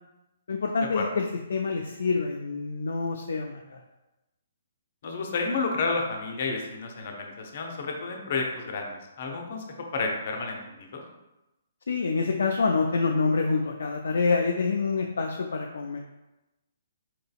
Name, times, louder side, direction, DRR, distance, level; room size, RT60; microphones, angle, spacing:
voice 1, 0.5-3.8 11.9-16.0, left 4 dB, 60° left, 1 dB, 0.4 m, -27 dB
voice 2, 5.0-9.6 9.9-11.0, left 4 dB, 45° left, 2 dB, 0.8 m, -31 dB
4.5 x 3.9 x 2.4 m, 0.97 s
figure-of-eight pair, 130°, 0 cm